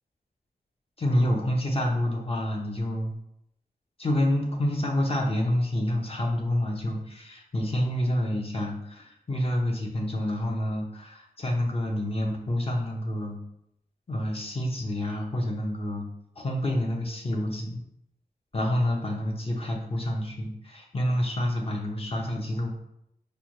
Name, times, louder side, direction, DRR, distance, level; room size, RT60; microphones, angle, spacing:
voice 1, 1.0-3.1 4.0-13.4 14.1-16.1 16.4-17.8 18.5-22.7, left 1 dB, 35° left, 0 dB, 0.7 m, -28 dB
5.0 x 2.1 x 3.0 m, 0.77 s
wide cardioid pair, 115°, 16 cm